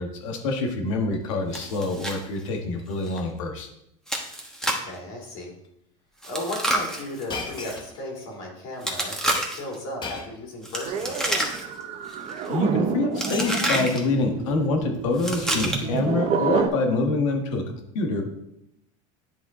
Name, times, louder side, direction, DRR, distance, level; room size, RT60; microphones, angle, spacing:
voice 1, 0.0-3.7 12.5-17.6 17.9-18.2, left 3 dB, 85° left, 4 dB, 1.4 m, -26 dB
Shatter, 1.0-1.4 1.8-2.2 2.6-2.8 3.1-3.2 4.1-4.3 4.6-4.9 5.6-5.7 7.3-8.4 10.0-10.5 11.5-11.6 12.6-12.7 13.0-14.5 15.5-15.7, left 4 dB, 30° left, 0.9 m, -39 dB
Chewing mastication, 1.5-2.2 2.5-2.6 3.1-3.2 4.1-4.9 6.2-7.8 8.8-9.7 10.6-11.8 12.1-12.5 13.2-14.0 15.1-16.0, right 1 dB, 5° left, 1.1 m, -28 dB
voice 2, 4.6-5.5 6.2-11.5, left 1 dB, 65° left, -2 dB, 2.9 m, -35 dB
sound 1, 10.8-16.7, right 6 dB, 40° right, 0.8 m, -29 dB
10.0 x 3.7 x 3.7 m, 0.79 s
supercardioid pair, 120°, 16 cm